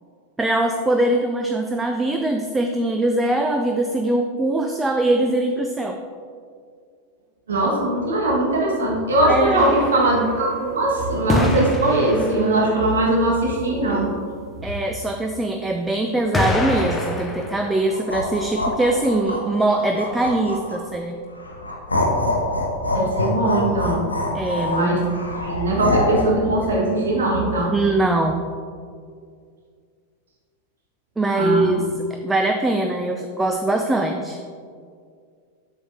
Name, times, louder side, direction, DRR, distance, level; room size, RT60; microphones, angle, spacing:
voice 1, 0.4-6.0 9.3-9.7 14.6-21.2 24.3-24.9 27.7-28.4 31.2-34.4, right 2 dB, 10° right, 4 dB, 0.4 m, -22 dB
voice 2, 7.5-14.1 22.9-24.0 24.7-25.0 25.4-27.7 31.3-31.7, right 1 dB, 65° right, -2 dB, 1.6 m, -20 dB
sound 1, 9.6-10.7 11.3-12.8 15.1-15.2 16.3-18.0, left 1 dB, 10° left, 0.8 m, -26 dB
sound 2, 17.9-20.9 21.4-26.2, left 2 dB, 80° left, 0.8 m, -25 dB
7.7 x 6.2 x 2.7 m, 2.1 s
figure-of-eight pair, 90°, 0 cm